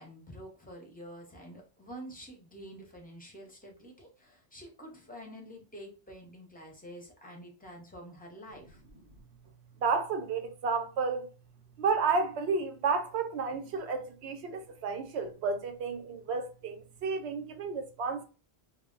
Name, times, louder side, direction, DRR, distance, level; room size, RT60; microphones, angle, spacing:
voice 1, 0.0-8.8, equal, 10° left, 0.6 m, -48 dB
voice 2, 9.8-11.3 11.8-18.2, right 4 dB, 80° right, 0.9 m, -31 dB
2.2 x 2.0 x 3.6 m
omnidirectional pair, 1.1 m